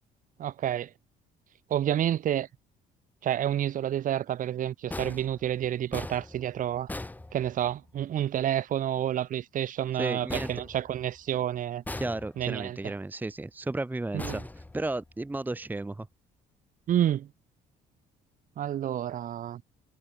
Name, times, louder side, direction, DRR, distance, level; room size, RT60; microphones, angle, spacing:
voice 1, 0.4-0.9 1.7-2.5 3.2-6.9 7.3-11.8 12.4-12.9 14.1-14.4 16.9-17.3 18.6-19.6, right 11 dB, 50° right, 1.0 m, -29 dB
sound 1, 4.9-8.0 10.3-11.4 11.9-12.7 14.2-15.3, left 2 dB, 10° left, 1.4 m, -40 dB
voice 2, 10.0-10.5 11.9-16.1, right 2 dB, 10° right, 1.1 m, -34 dB
cardioid pair, 110°, 17 cm